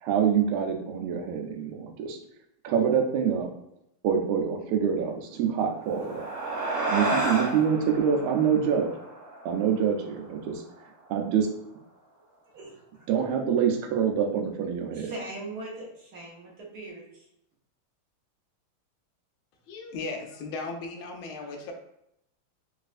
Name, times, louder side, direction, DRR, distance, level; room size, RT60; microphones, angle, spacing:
voice 1, 0.0-2.2 2.6-3.5 4.0-6.3 6.9-8.9 9.4-10.6 11.1-11.4 13.1-15.1, right 7 dB, 85° right, 3 dB, 1.5 m, -26 dB
sound 1, 5.7-10.4, right 2 dB, 40° right, 1.6 m, -32 dB
voice 2, 12.2-13.1 14.9-17.3, right 2 dB, 60° right, -4 dB, 1.1 m, -41 dB
voice 3, 19.7-21.7, left 3 dB, 80° left, 3 dB, 1.4 m, -36 dB
4.1 x 2.4 x 2.4 m, 0.80 s
omnidirectional pair, 2.3 m